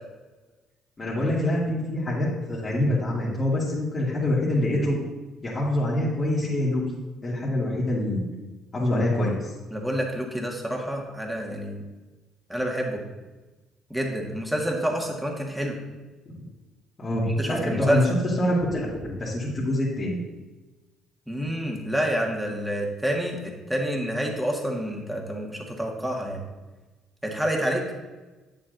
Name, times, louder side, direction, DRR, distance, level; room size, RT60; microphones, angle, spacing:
voice 1, 1.0-5.0 5.4-6.8 7.2-8.3 8.7-9.5 16.3-16.4 17.0-18.1 18.4-20.2, left 1 dB, 30° left, -8 dB, 2.3 m, -25 dB
voice 2, 9.7-11.8 12.5-13.0 13.9-15.8 17.3-18.1 21.3-26.4 27.2-27.8, equal, 5° right, 0 dB, 1.7 m, -28 dB
8.5 x 7.3 x 2.6 m, 1.2 s
supercardioid pair, 65°, 0 cm